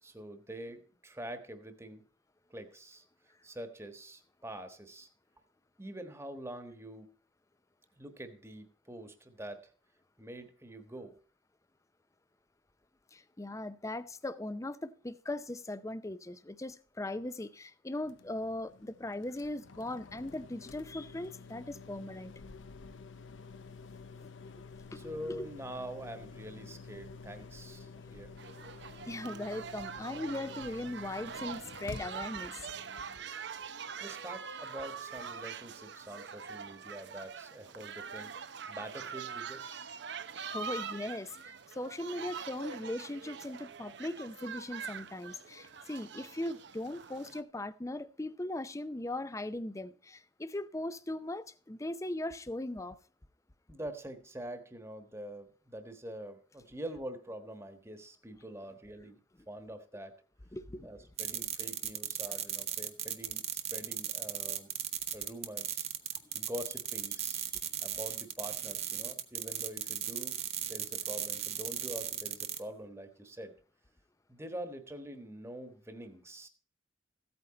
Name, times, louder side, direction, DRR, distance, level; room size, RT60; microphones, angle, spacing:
voice 1, 0.0-2.0 2.5-3.0 3.4-5.1 5.8-7.1 7.9-9.7 10.2-11.2 24.9-28.3 34.0-38.3 38.7-39.9 53.7-59.2 59.5-60.1 60.8-64.7 65.1-65.9 66.3-67.4 67.8-73.5 74.3-76.5, right 1 dB, 15° right, 1.4 m, -45 dB
voice 2, 13.1-22.3 24.9-25.5 28.0-28.1 29.1-32.7 40.4-53.0 60.5-60.9 67.5-67.6, left 1 dB, 15° left, 0.6 m, -39 dB
sound 1, 18.0-33.2, left 4 dB, 85° left, 0.8 m, -50 dB
sound 2, 28.4-47.4, right 6 dB, 65° right, 0.7 m, -44 dB
sound 3, 61.2-72.6, right 9 dB, 35° right, 1.0 m, -37 dB
15.0 x 8.7 x 4.2 m
head